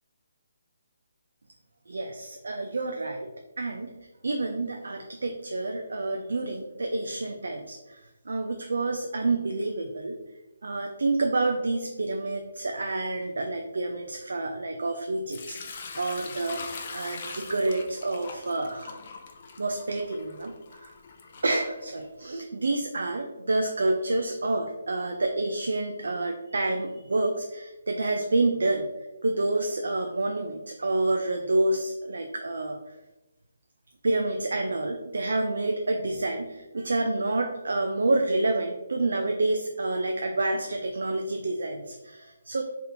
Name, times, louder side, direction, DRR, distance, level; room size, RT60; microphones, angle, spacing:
voice 1, 1.9-3.3 3.6-3.9 4.2-10.2 10.6-16.6 16.9-19.0 19.6-20.9 21.4-28.9 29.2-32.8 34.0-42.6, right 2 dB, 80° right, 4 dB, 0.3 m, -28 dB
Sink (filling or washing) / Liquid, 15.3-22.2, left 4 dB, 45° left, 0.4 m, -42 dB
3.4 x 2.8 x 2.5 m, 1.1 s
hypercardioid pair, 150°, 0 cm